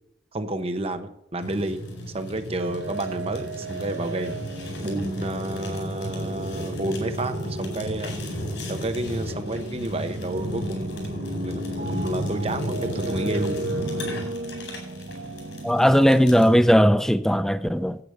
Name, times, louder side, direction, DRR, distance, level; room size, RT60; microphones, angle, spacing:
voice 1, 0.3-1.8 2.1-4.4 4.8-8.1 8.7-13.6, right 1 dB, 30° right, 1.1 m, -30 dB
Fire, 1.4-16.6, equal, 75° left, 4.6 m, -33 dB
sound 1, 2.6-16.3, right 2 dB, 80° right, 1.0 m, -36 dB
voice 2, 15.6-18.0, equal, 5° left, 0.5 m, -18 dB
9.8 x 8.8 x 6.7 m
head